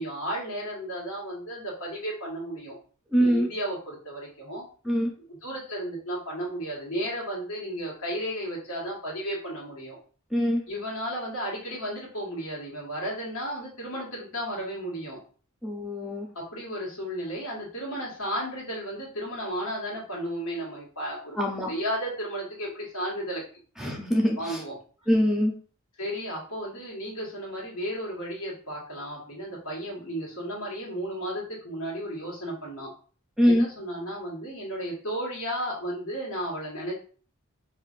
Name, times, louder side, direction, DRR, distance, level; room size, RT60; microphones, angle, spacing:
voice 1, 0.0-2.8 3.2-4.6 5.3-10.0 10.7-15.2 16.4-21.4 21.7-23.4 24.4-24.8 26.0-32.9 33.4-36.9, equal, 80° left, -4 dB, 1.6 m, -34 dB
voice 2, 3.1-3.5 4.8-5.1 10.3-10.6 15.6-16.3 21.4-21.7 23.8-24.6 25.1-25.5 33.4-33.6, equal, ahead, 0 dB, 0.5 m, -23 dB
4.7 x 2.5 x 2.5 m, 0.41 s
head